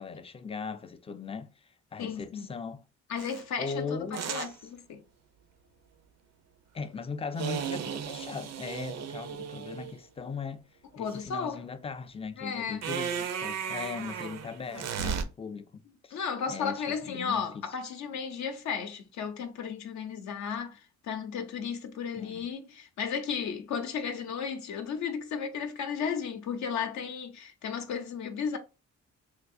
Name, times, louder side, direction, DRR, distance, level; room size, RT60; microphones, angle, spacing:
voice 1, 0.0-2.8 3.6-4.4 6.7-10.6 11.0-16.2 16.5-17.7 22.2-22.5, left 5 dB, 20° left, 0.4 m, -39 dB
voice 2, 2.0-2.5 3.1-5.0 11.0-11.6 12.4-12.8 16.1-28.6, left 6 dB, 65° left, 0.6 m, -34 dB
sound 1, 3.2-3.4 4.1-4.5 7.4-9.9 12.8-15.2, right 7 dB, 60° right, 0.5 m, -35 dB
3.3 x 2.7 x 2.4 m
cardioid pair, 90°, 30 cm